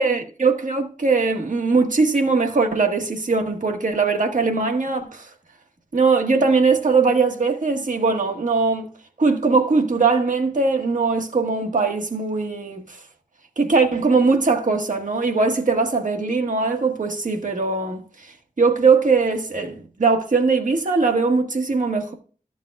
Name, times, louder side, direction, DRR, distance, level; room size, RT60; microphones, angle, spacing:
voice 1, 0.0-5.3 5.9-8.9 9.2-13.0 13.6-22.1, right 4 dB, 65° right, 1.6 m, -20 dB
13.0 x 7.2 x 2.4 m
wide cardioid pair, 80°, 14 cm